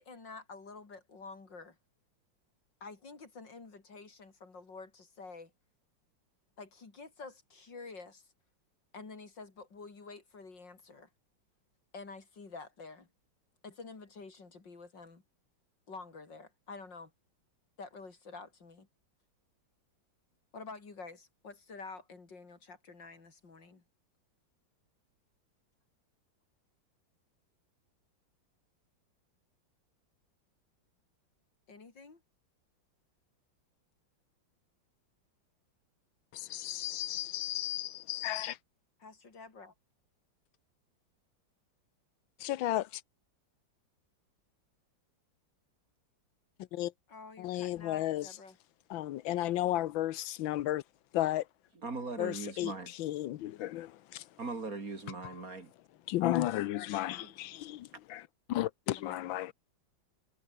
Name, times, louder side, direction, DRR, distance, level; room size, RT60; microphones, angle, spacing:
voice 1, 0.0-1.8 2.8-5.5 6.6-8.3 8.9-11.1 11.9-13.1 13.6-15.2 15.9-17.1 17.8-18.9 20.5-23.8 31.7-32.2 39.0-39.7 47.1-48.6 59.1-59.2, left 4 dB, 65° left, 4.4 m, -49 dB
voice 2, 36.3-38.6 42.4-43.0 46.6-46.9 47.4-48.4 48.9-50.8 51.1-51.5 52.2-54.3 55.2-55.3 56.1-59.5, left 14 dB, 90° left, 1.5 m, -34 dB
voice 3, 51.8-52.9 54.4-55.7 57.2-57.3, right 3 dB, 45° right, 3.6 m, -39 dB
omnidirectional pair, 2.1 m